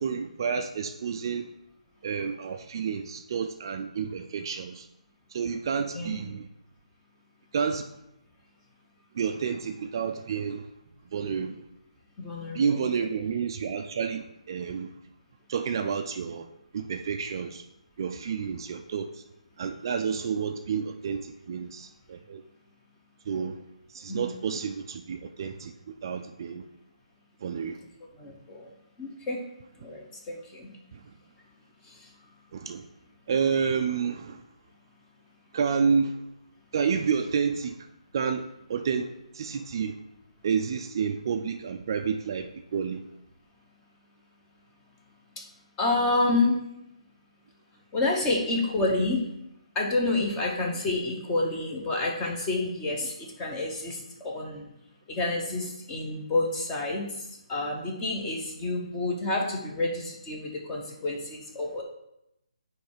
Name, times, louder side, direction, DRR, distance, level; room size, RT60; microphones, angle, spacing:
voice 1, 0.0-1.5 2.0-4.9 5.3-6.5 7.5-7.9 9.1-10.7 11.1-11.7 12.5-15.0 15.5-16.5 16.7-17.7 18.0-19.2 19.6-22.4 23.3-23.6 23.9-26.6 27.4-27.8 30.9-31.1 32.5-32.9 33.3-34.4 35.5-36.2 36.7-37.8 38.1-40.0 40.4-43.1, right 6 dB, 35° right, 6 dB, 0.4 m, -30 dB
voice 2, 12.2-12.9 24.1-24.2 28.2-28.7 29.0-29.4 29.8-30.7 31.8-32.1 45.4-45.5 45.8-46.6 47.9-49.3 49.7-54.7 55.1-61.8, left 2 dB, 15° left, 0 dB, 0.8 m, -29 dB
9.2 x 3.2 x 4.5 m, 0.84 s
hypercardioid pair, 165°, 4 cm